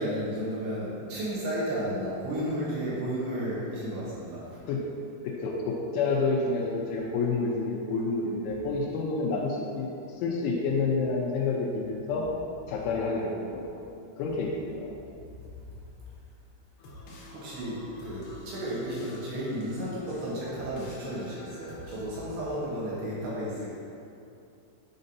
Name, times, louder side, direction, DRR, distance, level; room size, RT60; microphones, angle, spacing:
voice 1, 0.0-4.4 17.3-23.7, equal, 70° right, -7 dB, 2.9 m, -33 dB
voice 2, 5.2-9.9 10.2-12.3 12.7-13.8 14.2-14.9, left 3 dB, 85° left, -3 dB, 3.1 m, -29 dB
sound 1, 16.8-22.0, left 2 dB, 70° left, 2.4 m, -48 dB
9.4 x 5.2 x 2.7 m, 2.6 s
omnidirectional pair, 5.4 m